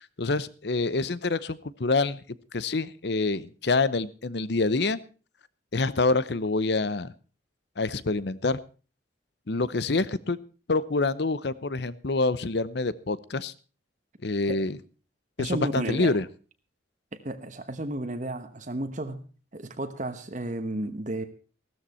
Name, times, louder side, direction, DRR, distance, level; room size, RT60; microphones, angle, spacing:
voice 1, 0.0-2.2 2.5-5.0 5.7-7.1 7.8-8.6 9.5-10.4 10.7-13.5 14.2-14.8 15.4-16.3, left 3 dB, 60° left, 18 dB, 0.8 m, -26 dB
voice 2, 15.4-16.2 17.1-19.2 19.5-21.2, right 1 dB, 40° right, 8 dB, 1.1 m, -33 dB
15.5 x 13.5 x 4.3 m, 0.37 s
head